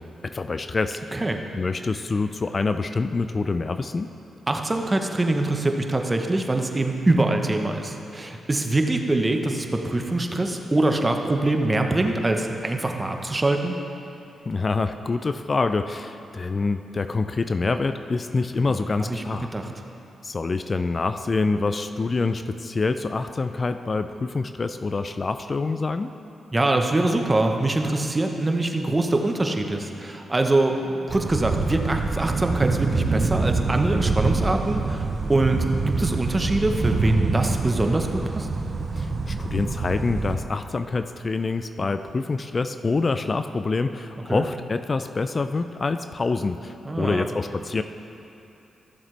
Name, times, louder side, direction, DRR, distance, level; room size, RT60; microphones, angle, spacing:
voice 1, 0.0-1.0 1.6-4.1 14.5-19.5 20.2-26.1 38.9-47.8, left 3 dB, 45° left, 9 dB, 0.4 m, -26 dB
voice 2, 4.5-13.8 18.7-18.8 19.1-19.2 19.5-19.7 26.5-38.5 44.2-44.4 46.8-47.2, right 2 dB, 25° right, 4 dB, 1.0 m, -24 dB
sound 1, 31.1-40.4, right 3 dB, 50° right, 0.7 m, -25 dB
14.0 x 7.2 x 3.3 m, 2.9 s
supercardioid pair, 45°, 0 cm